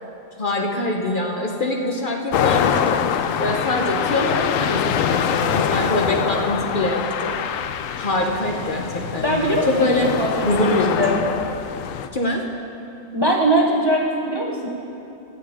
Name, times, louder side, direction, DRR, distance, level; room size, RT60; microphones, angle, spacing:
voice 1, 0.4-3.0 3.4-7.5 8.0-10.1 10.4-11.4 12.1-12.4, left 1 dB, 45° left, 0 dB, 1.0 m, -24 dB
sound 1, 2.3-12.1, left 8 dB, 80° left, 1.0 m, -24 dB
voice 2, 9.2-10.6 11.0-11.2 13.1-14.7, right 1 dB, 20° right, -1 dB, 0.8 m, -21 dB
22.0 x 7.7 x 3.5 m, 2.9 s
omnidirectional pair, 1.3 m